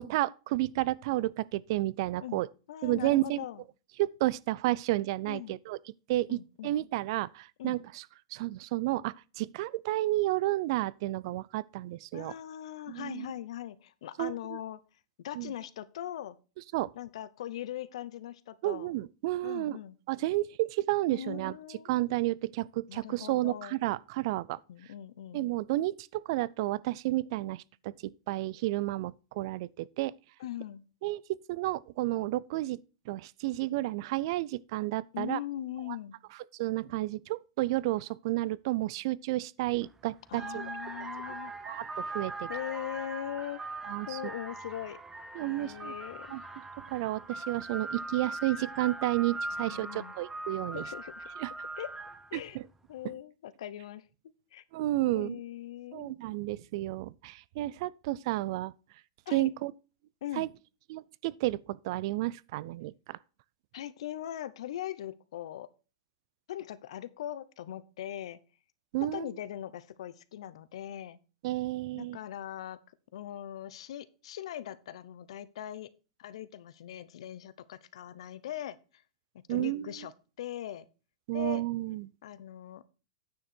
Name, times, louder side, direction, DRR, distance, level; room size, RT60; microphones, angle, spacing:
voice 1, 0.0-2.5 2.8-3.4 4.0-5.8 6.1-6.4 6.6-8.0 8.3-12.3 12.9-13.3 14.2-14.3 15.4-15.5 16.7-16.9 18.6-19.8 20.1-21.6 21.9-24.6 25.3-27.9 28.3-30.1 31.0-32.8 33.1-35.4 36.6-40.7 41.6-42.5 43.8-44.2 45.3-45.9 46.3-46.4 46.9-50.8 51.4-51.5 52.3-52.6 54.7-55.3 55.9-58.7 59.3-59.7 60.4-60.5 60.9-63.2 68.9-69.3 71.4-72.2 79.5-79.9 81.3-82.1, right 17 dB, 55° right, 0.4 m, -31 dB
voice 2, 2.7-3.6 5.3-5.6 6.3-6.7 7.6-7.8 12.1-14.8 15.2-16.4 16.9-18.9 19.4-20.0 21.1-21.9 22.9-23.8 24.7-25.4 30.4-30.8 35.1-36.2 40.3-41.5 42.5-43.6 44.1-45.0 45.4-46.4 49.6-50.2 50.7-51.3 51.8-51.9 52.3-52.6 52.9-54.0 54.5-54.6 55.1-56.1 59.3-59.5 60.2-60.5 63.7-65.7 66.5-68.4 69.1-71.2 71.9-72.8 73.1-75.9 76.2-79.0 79.5-80.9 81.3-81.6 82.2-82.8, left 11 dB, 75° left, 0.8 m, -40 dB
sound 1, 39.7-39.9 40.3-52.4, right 2 dB, 10° right, 0.8 m, -40 dB
9.5 x 6.6 x 4.4 m
supercardioid pair, 145°, 3 cm